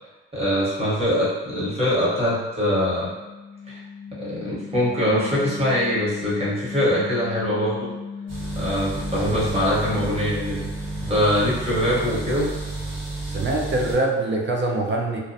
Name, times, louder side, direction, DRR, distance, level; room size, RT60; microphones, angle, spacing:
voice 1, 0.3-3.1 3.7-3.8 4.2-7.9 8.5-10.7 11.0-12.5, equal, 20° right, -7 dB, 1.0 m, -23 dB
sound 1, 2.5-12.6, left 5 dB, 40° left, 0.5 m, -37 dB
sound 2, 8.3-14.0, right 2 dB, 60° right, 1.1 m, -31 dB
voice 2, 13.3-15.2, right 2 dB, 40° right, 0 dB, 0.5 m, -24 dB
2.4 x 2.2 x 2.6 m, 1.1 s
cardioid pair, 90°, 30 cm